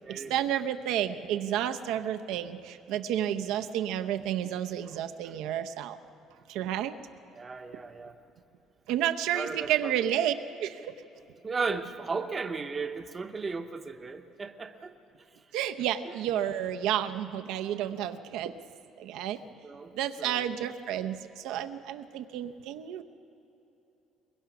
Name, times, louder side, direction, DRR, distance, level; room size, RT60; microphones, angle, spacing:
voice 1, 0.1-6.0 6.5-7.0 8.9-10.3 10.6-10.9 15.5-18.5 19.0-19.4 19.9-23.0, right 11 dB, 90° right, 8 dB, 0.7 m, -31 dB
voice 2, 7.4-8.2 9.3-9.9 11.4-14.9 19.6-19.9 20.2-20.5, right 4 dB, 20° right, 8 dB, 0.7 m, -35 dB
22.5 x 21.5 x 6.0 m, 2.9 s
cardioid pair, 175°, 0 cm